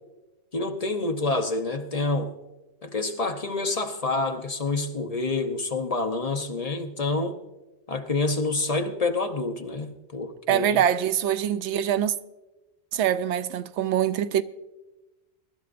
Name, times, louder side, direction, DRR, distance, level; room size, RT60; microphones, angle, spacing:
voice 1, 0.5-2.3 2.8-7.4 7.9-10.8, left 3 dB, 40° left, 0.7 m, -27 dB
voice 2, 10.5-12.1 12.9-14.4, right 10 dB, 90° right, 0.9 m, -24 dB
22.0 x 12.0 x 2.5 m
omnidirectional pair, 1.1 m